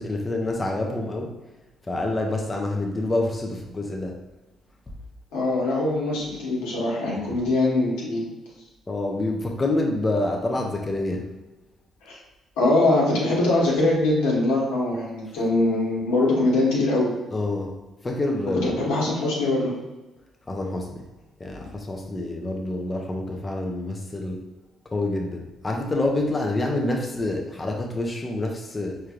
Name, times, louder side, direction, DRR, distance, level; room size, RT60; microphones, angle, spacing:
voice 1, 0.0-1.3 1.9-4.2 7.2-7.3 8.9-11.3 17.3-17.7 18.0-18.8 20.5-21.0 21.4-24.5 24.9-29.0, left 2 dB, 25° left, 1 dB, 0.6 m, -27 dB
voice 2, 5.3-8.2 12.0-12.2 12.6-17.1 18.6-19.7, left 2 dB, 85° left, -5 dB, 1.2 m, -22 dB
4.5 x 3.2 x 2.4 m, 1.1 s
supercardioid pair, 65°, 0 cm